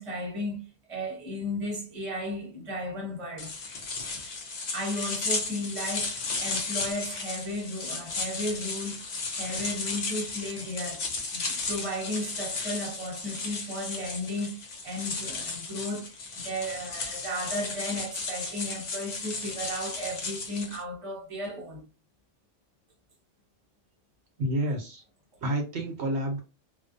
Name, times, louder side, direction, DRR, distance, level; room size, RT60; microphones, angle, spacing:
voice 1, 0.0-3.6 4.7-9.0 9.4-11.0 11.3-16.1 16.4-21.8, left 1 dB, 30° right, 0.9 m, -34 dB
sound 1, 3.4-20.8, left 3 dB, 65° left, 0.4 m, -34 dB
voice 2, 24.4-25.0 25.4-26.4, right 1 dB, 65° right, 0.9 m, -29 dB
2.5 x 2.1 x 2.5 m
omnidirectional pair, 1.3 m